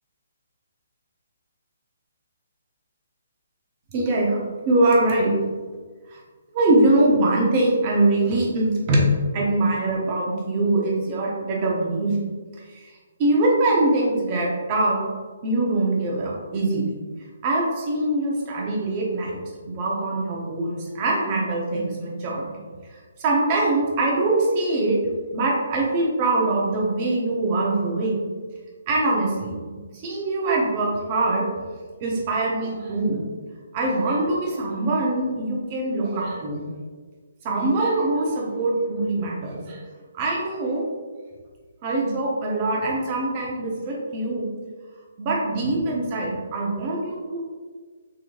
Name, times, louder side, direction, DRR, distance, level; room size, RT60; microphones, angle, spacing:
voice 1, 3.9-4.4 4.6-5.3 6.1-6.2 6.5-9.1 9.3-12.2 12.7-12.9 13.2-15.0 15.4-17.0 17.4-19.4 19.6-22.5 22.9-25.0 25.3-28.2 28.9-31.5 32.0-33.2 33.7-36.7 37.4-39.8 40.1-40.9 41.8-44.5 45.2-47.4, right 2 dB, 35° right, -3 dB, 0.9 m, -23 dB
3.9 x 3.0 x 2.5 m, 1.5 s
figure-of-eight pair, 140°, 0 cm